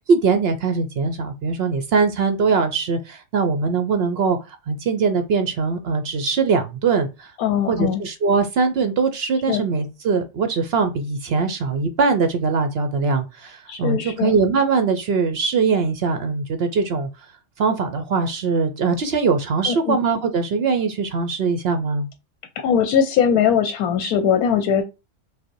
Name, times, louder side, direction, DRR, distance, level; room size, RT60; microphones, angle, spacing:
voice 1, 0.1-7.3 7.7-17.1 17.6-22.1, right 4 dB, 65° right, 0.6 m, -21 dB
voice 2, 7.4-8.0 9.5-9.6 13.7-14.4 19.7-20.0 22.6-24.8, left 8 dB, 90° left, 1.1 m, -20 dB
5.1 x 2.1 x 4.5 m
omnidirectional pair, 1.5 m